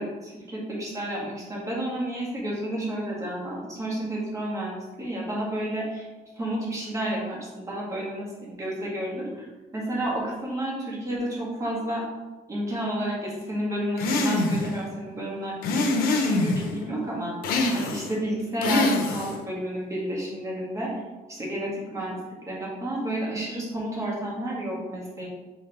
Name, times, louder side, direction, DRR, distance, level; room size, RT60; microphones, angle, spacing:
voice 1, 0.0-6.1 6.4-12.0 12.5-17.3 17.7-20.9 21.3-22.2 22.5-25.3, right 1 dB, 20° right, -4 dB, 2.0 m, -31 dB
sound 1, 14.0-14.7 15.6-16.7 17.4-18.1 18.6-19.4, left 2 dB, 85° left, 0.8 m, -24 dB
5.6 x 3.9 x 4.3 m, 1.2 s
cardioid pair, 140°, 15 cm